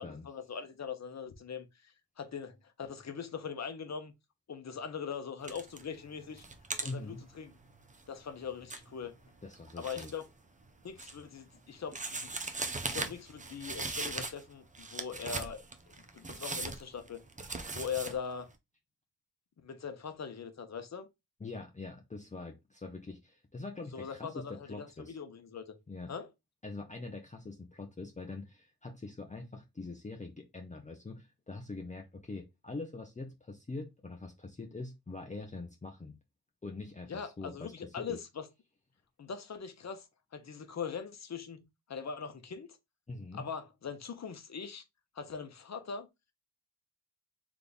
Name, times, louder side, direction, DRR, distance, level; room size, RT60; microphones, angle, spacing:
voice 1, 0.0-4.1 4.5-6.4 6.8-7.5 8.1-9.2 9.8-10.2 10.8-12.4 12.9-15.6 16.1-17.2 17.7-18.5 19.6-21.1 23.9-25.6 26.1-26.3 37.1-38.5 39.2-40.1 40.3-41.6 41.9-42.7 43.3-44.8 45.1-46.1, left 6 dB, 40° left, 0.9 m, -41 dB
sound 1, 5.4-5.9 6.2-10.2 10.6-11.4 11.9-14.5 14.7-18.2, right 3 dB, 20° right, 0.7 m, -39 dB
voice 2, 6.8-7.2 9.4-10.1 21.4-25.2 25.9-26.1 26.6-36.2 36.6-38.2 43.1-43.5, left 3 dB, 20° left, 0.7 m, -44 dB
3.5 x 3.3 x 4.0 m
cardioid pair, 105°, 40 cm